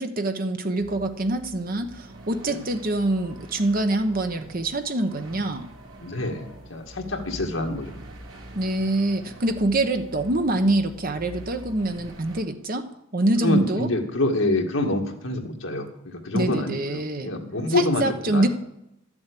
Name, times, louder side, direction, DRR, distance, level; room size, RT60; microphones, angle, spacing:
voice 1, 0.0-5.7 8.5-12.9 13.1-13.9 16.3-17.3 17.8-18.5, right 2 dB, 45° right, 7 dB, 1.1 m, -25 dB
sound 1, 0.8-12.4, right 1 dB, 70° right, 4.0 m, -44 dB
voice 2, 6.0-7.9 13.4-18.5, left 2 dB, 70° left, 2 dB, 1.9 m, -26 dB
12.5 x 7.2 x 8.4 m, 0.86 s
head